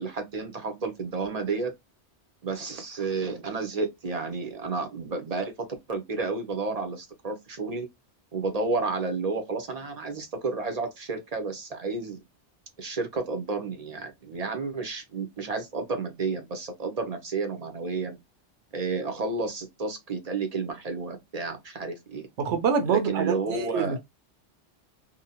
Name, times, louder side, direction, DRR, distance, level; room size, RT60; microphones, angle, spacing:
voice 1, 0.0-1.7 2.4-7.9 8.3-12.2 12.8-18.2 18.7-22.3 22.9-24.0, right 4 dB, 40° right, 0.6 m, -31 dB
voice 2, 22.4-24.0, right 6 dB, 75° right, 1.0 m, -26 dB
2.7 x 2.1 x 2.7 m
omnidirectional pair, 1.2 m